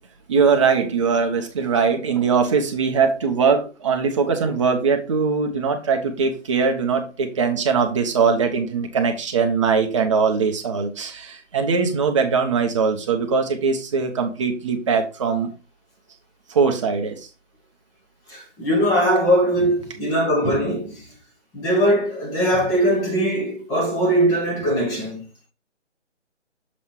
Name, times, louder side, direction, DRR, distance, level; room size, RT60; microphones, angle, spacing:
voice 1, 0.3-15.5 16.5-17.3, right 5 dB, 25° right, 0.9 m, -21 dB
voice 2, 18.3-21.1 21.5-25.2, equal, 10° left, 1.0 m, -20 dB
7.1 x 3.6 x 4.5 m
figure-of-eight pair, 155°, 37 cm